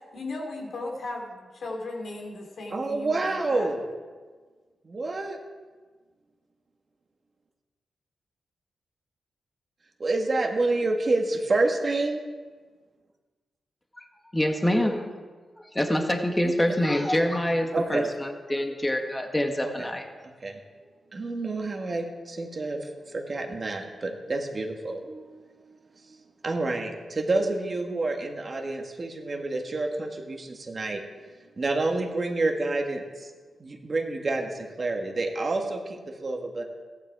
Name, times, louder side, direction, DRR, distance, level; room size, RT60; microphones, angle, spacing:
voice 1, 0.1-3.7, left 2 dB, 70° left, 1 dB, 3.0 m, -36 dB
voice 2, 2.7-3.8 4.8-5.4 10.0-12.2 16.4-16.7 17.7-18.0 19.6-19.9 20.4-20.6 21.1-25.5 26.1-31.0 31.6-33.3 33.6-36.6, right 2 dB, 45° right, 3 dB, 1.8 m, -28 dB
voice 3, 14.3-15.1 15.5-20.0, left 1 dB, 15° left, 4 dB, 1.6 m, -26 dB
15.0 x 11.0 x 4.8 m, 1.4 s
cardioid pair, 65°, 0 cm